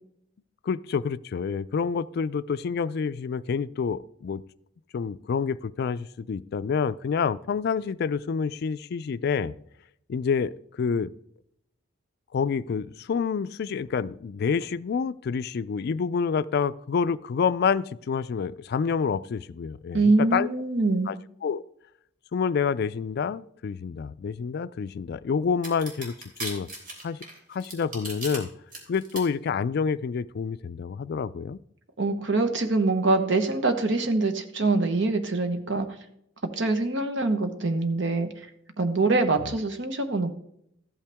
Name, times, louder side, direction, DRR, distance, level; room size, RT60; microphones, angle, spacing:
voice 1, 0.6-4.4 4.9-9.5 10.1-11.1 12.3-20.5 21.1-21.2 21.4-21.6 22.3-26.1 26.4-26.7 27.0-27.2 27.5-28.5 28.9-31.6, left 6 dB, 55° left, 14 dB, 0.3 m, -28 dB
voice 2, 19.9-21.1 32.0-35.9 36.6-38.3 38.8-40.3, right 3 dB, 70° right, 7 dB, 1.1 m, -24 dB
sound 1, 25.6-28.4 28.7-29.2, right 2 dB, 50° right, 3.2 m, -36 dB
14.0 x 8.6 x 3.5 m, 0.74 s
head